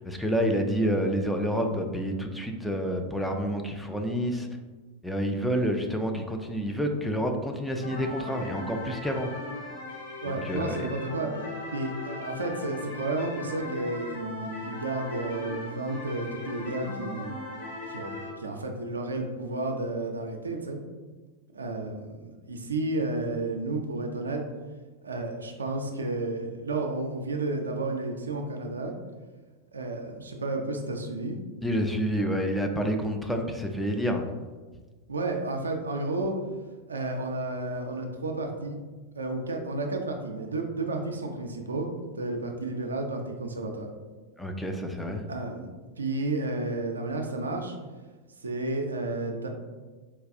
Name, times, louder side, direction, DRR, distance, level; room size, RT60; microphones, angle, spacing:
voice 1, 0.0-4.5 5.0-9.3 10.2-10.9 31.6-34.3 44.4-45.2, equal, 5° left, 3 dB, 0.3 m, -28 dB
sound 1, 7.8-18.3, left 2 dB, 60° left, 0.7 m, -39 dB
voice 2, 10.2-11.3 11.7-17.4 17.9-20.8 21.5-24.4 25.0-28.9 29.7-31.4 35.1-36.3 36.9-38.8 39.2-41.9 42.2-43.9 45.3-45.7 46.0-47.8 48.4-49.5, right 2 dB, 75° right, 3 dB, 0.4 m, -32 dB
4.1 x 2.2 x 2.5 m, 1.3 s
figure-of-eight pair, 90°, 0 cm